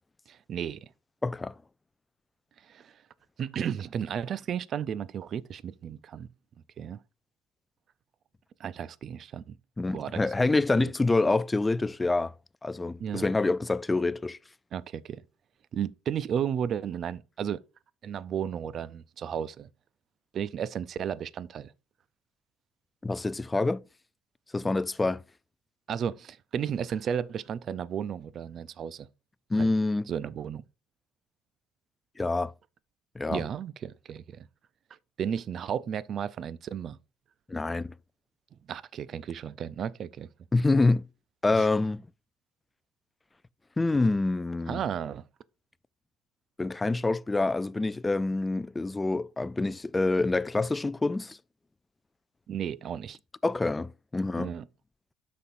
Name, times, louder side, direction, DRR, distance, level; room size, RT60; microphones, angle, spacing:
voice 1, 0.3-0.9 2.7-2.9 3.4-6.3 6.8-7.0 8.6-9.6 9.9-10.2 10.7-10.9 13.0-13.3 14.7-15.2 15.7-17.6 18.0-19.7 20.3-21.7 25.9-29.1 29.6-29.7 30.1-30.6 33.3-34.5 35.2-37.0 38.7-40.3 41.6-41.7 44.7-45.2 52.5-53.2 54.4-54.6, right 8 dB, 50° right, 0.4 m, -33 dB
voice 2, 1.2-1.5 9.8-12.3 12.6-14.4 23.0-23.8 24.5-25.2 29.5-30.1 32.2-32.5 33.2-33.4 37.5-37.9 40.5-41.0 41.4-42.0 43.8-44.8 46.6-51.4 53.4-54.5, left 3 dB, 15° left, 0.4 m, -26 dB
12.5 x 4.2 x 2.5 m
supercardioid pair, 75°, 0 cm